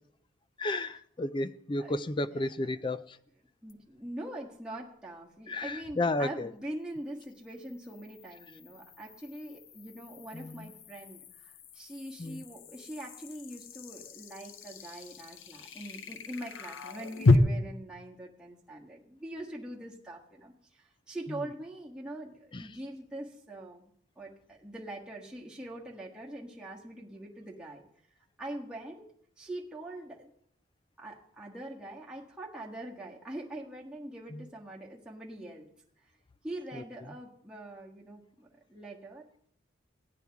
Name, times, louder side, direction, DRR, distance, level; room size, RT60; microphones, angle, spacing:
voice 1, 0.6-3.2 5.5-6.5 10.3-10.7 12.2-12.4 21.3-21.5 22.5-22.7 34.3-34.5 36.7-36.8, left 2 dB, 25° left, 13 dB, 0.4 m, -33 dB
voice 2, 3.6-23.8 24.1-27.8 28.4-29.0 29.4-30.3 31.0-35.7 36.4-39.5, right 1 dB, 5° right, -5 dB, 1.5 m, -43 dB
sound 1, 3.7-3.8 7.2-17.3, left 3 dB, 85° left, 0.8 m, -34 dB
17.0 x 9.7 x 3.5 m, 0.65 s
head